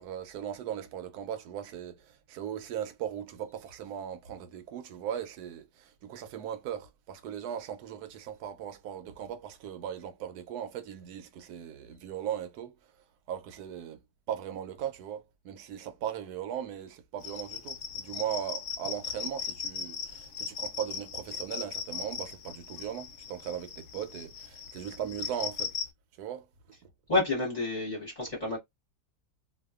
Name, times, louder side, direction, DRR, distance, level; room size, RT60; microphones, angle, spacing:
voice 1, 0.0-12.7 13.3-14.0 14.3-25.7 26.2-26.5, right 9 dB, 70° right, 1.1 m, -38 dB
sound 1, 17.2-25.9, left 6 dB, 75° left, 0.7 m, -38 dB
voice 2, 27.1-28.6, left 2 dB, 30° left, 1.0 m, -29 dB
2.7 x 2.3 x 2.3 m
omnidirectional pair, 1.8 m